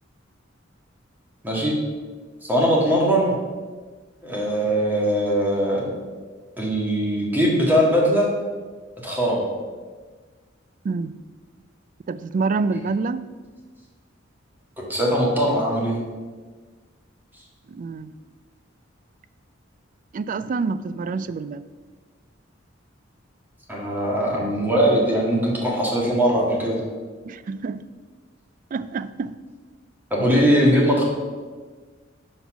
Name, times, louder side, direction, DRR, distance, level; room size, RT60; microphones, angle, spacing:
voice 1, 2.4-3.4 4.2-5.9 6.6-8.3 9.0-9.4 14.8-16.0 23.7-26.8 30.1-31.0, equal, 10° right, 1.7 m, -20 dB
voice 2, 12.1-13.3 17.7-18.1 20.1-21.6 27.2-27.8 28.7-29.3, right 4 dB, 45° right, 0.3 m, -27 dB
6.0 x 5.4 x 6.1 m
head